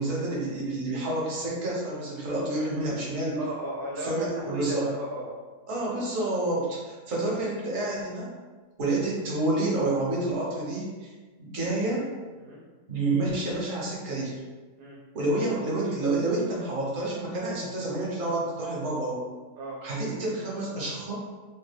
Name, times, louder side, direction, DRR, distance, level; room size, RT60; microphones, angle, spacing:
voice 1, 0.0-3.4 4.0-4.9 5.7-8.3 8.8-11.1 11.4-12.1 12.9-14.4 15.1-19.2 19.8-21.1, right 2 dB, 60° right, -4 dB, 1.1 m, -29 dB
voice 2, 2.3-2.7 3.4-5.3 12.3-12.6 14.8-15.0 19.6-19.8, right 1 dB, 80° right, -3 dB, 1.1 m, -36 dB
2.9 x 2.2 x 3.3 m, 1.4 s
omnidirectional pair, 1.7 m